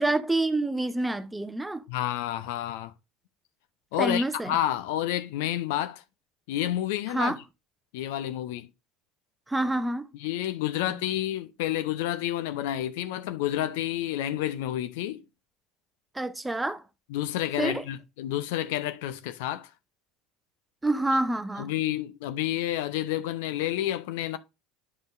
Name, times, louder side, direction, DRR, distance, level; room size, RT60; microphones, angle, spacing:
voice 1, 0.0-1.8 4.0-4.5 7.1-7.4 9.5-10.1 16.1-16.8 17.6-17.8 20.8-21.7, right 2 dB, 10° right, 0.7 m, -27 dB
voice 2, 1.9-2.9 3.9-6.0 6.5-7.3 7.9-8.7 10.2-15.2 17.1-19.7 21.6-24.4, left 12 dB, 65° left, 0.6 m, -29 dB
9.4 x 5.3 x 2.5 m
figure-of-eight pair, 70°, 0 cm